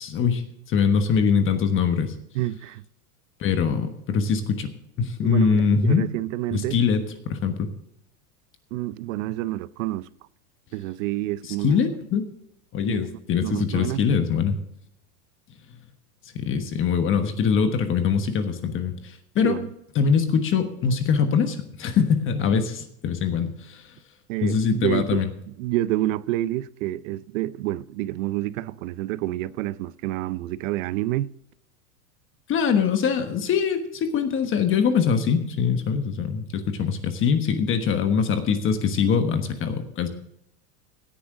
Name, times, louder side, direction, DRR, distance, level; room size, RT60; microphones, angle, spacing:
voice 1, 0.0-2.1 3.4-4.7 5.0-6.0 6.5-7.7 11.5-12.3 12.7-14.6 16.3-19.6 19.9-23.8 24.4-25.3 32.5-40.1, left 6 dB, 25° left, 1.3 m, -23 dB
voice 2, 2.3-2.8 5.2-6.8 8.7-10.1 10.7-11.8 12.9-14.0 19.4-19.7 24.3-31.3, right 15 dB, 60° right, 0.7 m, -28 dB
17.0 x 10.0 x 3.7 m
supercardioid pair, 140°, 44 cm